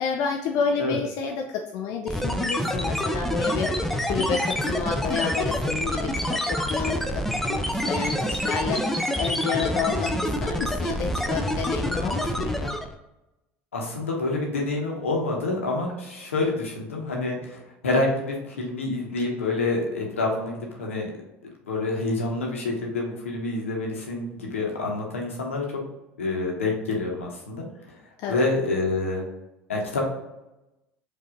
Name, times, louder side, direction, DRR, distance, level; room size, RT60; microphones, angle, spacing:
voice 1, 0.0-12.7 28.2-28.4, left 6 dB, 55° left, 3 dB, 0.4 m, -30 dB
sound 1, 2.1-13.0, equal, 5° left, 0.5 m, -27 dB
voice 2, 13.7-21.1 21.6-25.6 26.2-27.7 27.9-28.0 28.3-29.2 29.7-30.0, left 2 dB, 85° left, 0 dB, 1.0 m, -27 dB
4.9 x 2.6 x 3.8 m, 0.95 s
figure-of-eight pair, 70°, 7 cm